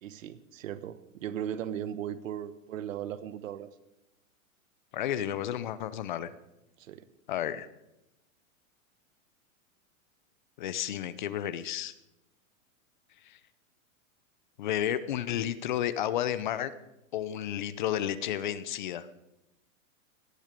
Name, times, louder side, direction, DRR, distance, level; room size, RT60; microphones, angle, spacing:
voice 1, 0.0-3.7 6.8-7.1, right 10 dB, 70° right, 14 dB, 1.2 m, -37 dB
voice 2, 4.9-6.3 7.3-7.7 10.6-11.9 13.3-13.4 14.6-16.7 17.1-19.1, left 11 dB, 35° left, 15 dB, 0.7 m, -32 dB
18.0 x 12.0 x 5.2 m, 0.93 s
supercardioid pair, 180°, 41 cm